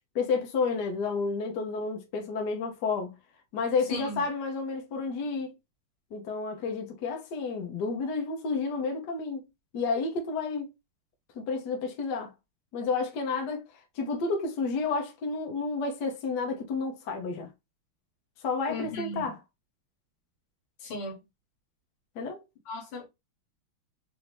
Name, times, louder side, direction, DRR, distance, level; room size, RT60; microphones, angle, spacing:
voice 1, 0.1-3.2 3.5-5.5 6.1-9.4 9.7-10.7 11.4-12.3 12.7-13.6 13.9-17.5 18.4-19.4 22.2-22.4, left 4 dB, 60° left, 1.3 m, -30 dB
voice 2, 3.9-4.2 18.7-19.3 20.8-21.2 22.7-23.1, left 2 dB, 75° left, 2.1 m, -36 dB
4.2 x 2.7 x 3.1 m
omnidirectional pair, 2.3 m